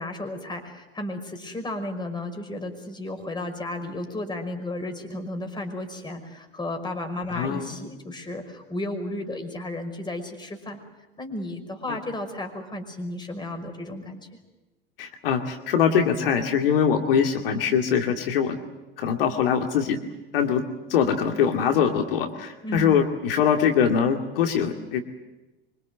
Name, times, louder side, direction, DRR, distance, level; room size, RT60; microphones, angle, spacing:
voice 1, 0.0-10.8 11.2-14.3 22.6-23.0, left 1 dB, 15° left, 6 dB, 5.5 m, -33 dB
voice 2, 7.3-7.7 11.9-12.0 15.0-18.6 19.0-20.0 20.3-20.6 20.9-25.0, left 7 dB, 65° left, 4 dB, 2.3 m, -23 dB
25.5 x 25.0 x 8.0 m, 1.1 s
figure-of-eight pair, 80°, 30 cm